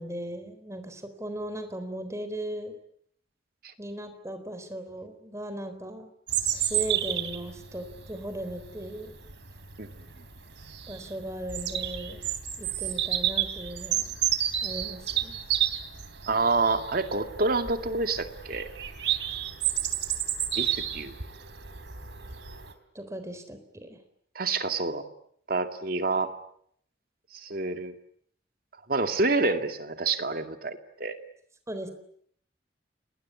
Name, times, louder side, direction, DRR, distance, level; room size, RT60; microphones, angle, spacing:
voice 1, 0.0-2.7 3.8-6.1 6.5-9.2 10.9-12.2 12.6-14.2 14.6-15.4 22.9-24.0 31.7-31.9, right 1 dB, 15° right, 9 dB, 4.0 m, -37 dB
Bird vocalization bird call bird song, 6.3-22.7, right 11 dB, 70° right, 3.2 m, -31 dB
voice 2, 16.3-18.7 20.6-21.1 24.4-25.0 25.5-26.3 27.3-27.9 28.9-31.2, right 3 dB, 50° right, 7 dB, 2.4 m, -27 dB
29.5 x 20.5 x 9.8 m, 0.69 s
head